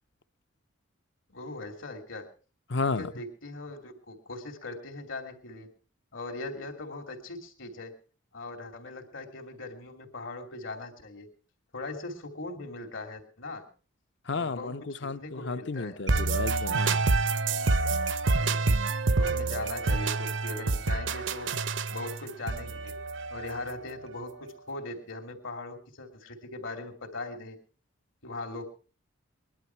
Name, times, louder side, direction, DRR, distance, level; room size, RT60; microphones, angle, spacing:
voice 1, 1.3-2.3 2.8-5.7 6.1-7.9 8.3-11.3 11.7-13.7 14.3-14.7 15.0-16.0 18.4-18.8 19.2-21.6 21.9-23.0 23.3-27.6 28.2-28.7, left 2 dB, 75° left, 2.8 m, -40 dB
voice 2, 2.7-3.1 14.3-17.0, left 3 dB, 60° left, 0.7 m, -32 dB
sound 1, 16.1-23.9, right 3 dB, 65° right, 0.7 m, -27 dB
21.0 x 11.5 x 4.6 m
head